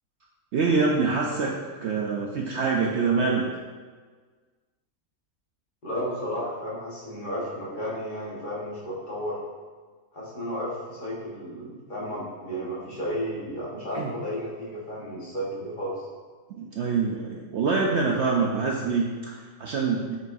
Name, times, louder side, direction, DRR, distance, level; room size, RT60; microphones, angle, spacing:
voice 1, 0.5-1.5 1.8-3.5 13.9-14.1 16.5-20.2, right 4 dB, 60° right, -1 dB, 0.8 m, -25 dB
voice 2, 5.8-9.4 10.1-16.1, equal, 35° left, -6 dB, 1.6 m, -33 dB
7.6 x 5.4 x 2.7 m, 1.5 s
omnidirectional pair, 1.5 m